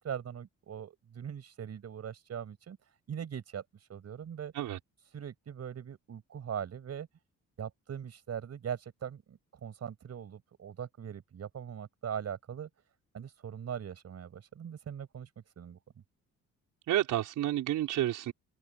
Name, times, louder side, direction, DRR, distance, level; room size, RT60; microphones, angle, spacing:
voice 1, 0.0-4.5 5.1-7.1 7.6-12.7 13.1-15.3 15.6-15.8, right 8 dB, 55° right, 6.9 m, -41 dB
voice 2, 16.9-18.3, right 13 dB, 80° right, 5.5 m, -30 dB
open air
cardioid pair, 90°, 30 cm